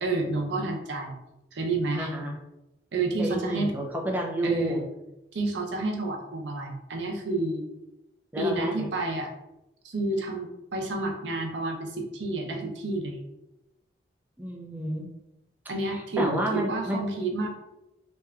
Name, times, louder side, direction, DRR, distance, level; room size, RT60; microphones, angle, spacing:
voice 1, 0.0-1.2 1.5-2.1 2.9-3.7 4.4-4.9 5.3-7.6 8.4-9.3 9.8-13.2 15.7-17.5, right 2 dB, 90° right, 1 dB, 0.5 m, -29 dB
voice 2, 1.9-2.4 3.2-4.8 8.3-8.9 14.4-15.1 15.8-17.0, right 1 dB, 10° right, -2 dB, 0.3 m, -30 dB
2.8 x 2.2 x 2.3 m, 0.92 s
head